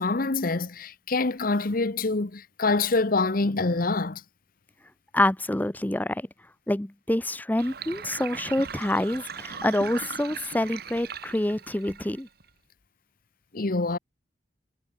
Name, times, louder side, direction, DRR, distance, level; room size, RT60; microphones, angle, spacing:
voice 1, 0.0-4.2 13.5-14.0, left 3 dB, 55° left, 1.1 m, -25 dB
voice 2, 5.1-6.3 6.7-12.3, left 1 dB, 10° left, 0.7 m, -27 dB
Sink (filling or washing), 7.6-12.5, right 6 dB, 65° right, 2.4 m, -39 dB
head